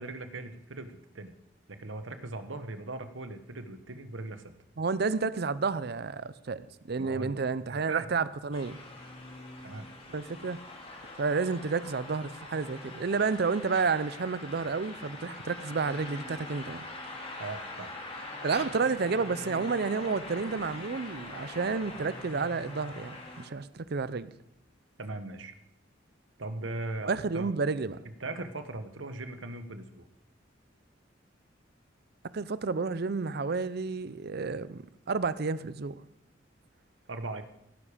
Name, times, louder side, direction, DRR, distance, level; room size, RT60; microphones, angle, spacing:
voice 1, 0.0-1.3 1.7-4.4 7.0-7.4 7.7-8.1 9.6-9.9 17.4-17.9 25.0-25.5 26.4-27.5 28.2-30.1 37.1-37.4, right 2 dB, 85° right, 1.1 m, -39 dB
voice 2, 4.8-6.6 6.9-8.8 10.1-10.6 11.2-16.8 18.4-24.3 27.0-28.0 32.3-34.8 35.1-36.0, right 4 dB, 55° right, 0.6 m, -30 dB
sound 1, 8.5-23.5, left 2 dB, 30° left, 2.3 m, -43 dB
16.5 x 9.8 x 5.0 m
head